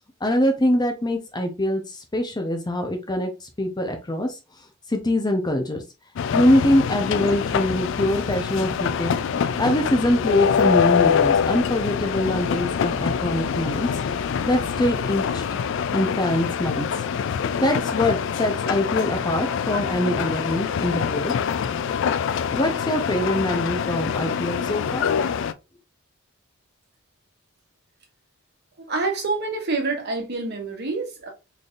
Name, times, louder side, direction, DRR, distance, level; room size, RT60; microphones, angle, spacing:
voice 1, 0.2-4.3 4.9-5.8 6.3-9.1 9.6-13.9 14.5-15.4 15.9-16.9 17.6-21.3 22.5-25.1, left 1 dB, 20° left, 0.7 m, -23 dB
sound 1, 6.1-25.5, left 7 dB, 60° left, 0.3 m, -25 dB
sound 2, 6.7-18.7, right 1 dB, 25° right, 0.6 m, -43 dB
voice 2, 28.8-31.3, right 3 dB, 50° right, 1.2 m, -27 dB
4.0 x 3.4 x 2.4 m
head